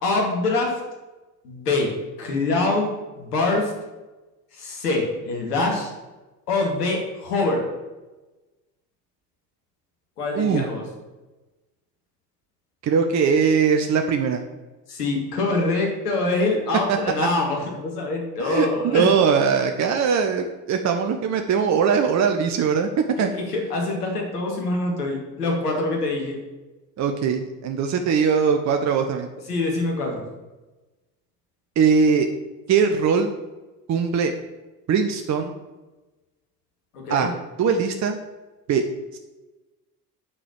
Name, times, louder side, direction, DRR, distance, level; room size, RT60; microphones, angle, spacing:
voice 1, 0.0-0.8 1.4-1.9 2.2-3.7 4.5-5.9 6.5-7.7 10.2-10.8 14.9-19.1 23.2-26.4 29.5-30.2 36.9-37.3, left 2 dB, 75° left, 0 dB, 2.5 m, -24 dB
voice 2, 12.8-14.4 16.9-17.0 18.4-22.9 23.2-23.3 27.0-29.3 31.8-32.3 32.7-33.3 33.9-34.3 34.9-35.5 37.1-37.3 37.6-38.2 38.7-38.8 39.1-39.2, right 6 dB, 35° right, 6 dB, 0.9 m, -21 dB
8.5 x 5.1 x 7.5 m, 1.1 s
figure-of-eight pair, 60°, 47 cm